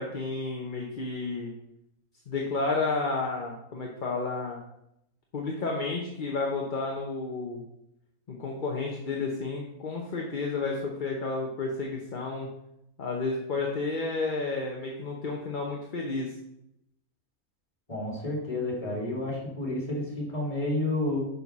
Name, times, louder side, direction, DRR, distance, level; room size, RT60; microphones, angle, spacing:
voice 1, 0.0-1.5 2.3-4.6 5.3-7.6 8.3-12.5 13.0-16.3, left 3 dB, 35° left, -1 dB, 1.0 m, -31 dB
voice 2, 17.9-21.2, left 2 dB, 20° left, -3 dB, 2.8 m, -30 dB
6.8 x 5.5 x 6.0 m, 0.82 s
omnidirectional pair, 1.5 m